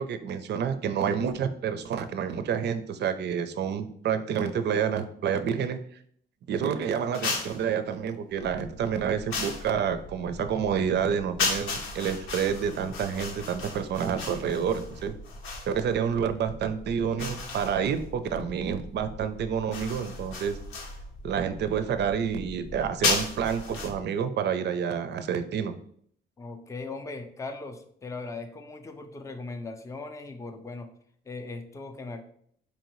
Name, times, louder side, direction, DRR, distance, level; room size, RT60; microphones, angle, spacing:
voice 1, 0.0-5.8 6.5-15.1 15.6-20.5 21.2-25.8, right 7 dB, 60° right, 10 dB, 0.5 m, -28 dB
sound 1, 7.1-7.6 9.3-9.7 11.4-15.7 17.2-18.0 19.7-21.0 23.0-23.9, left 4 dB, 85° left, 0.8 m, -33 dB
sound 2, 8.3-24.1, equal, 55° left, 0.7 m, -45 dB
voice 2, 26.4-30.9 31.2-32.2, left 3 dB, 15° left, 6 dB, 0.4 m, -39 dB
4.5 x 2.7 x 3.0 m, 0.63 s
cardioid pair, 90°, 20 cm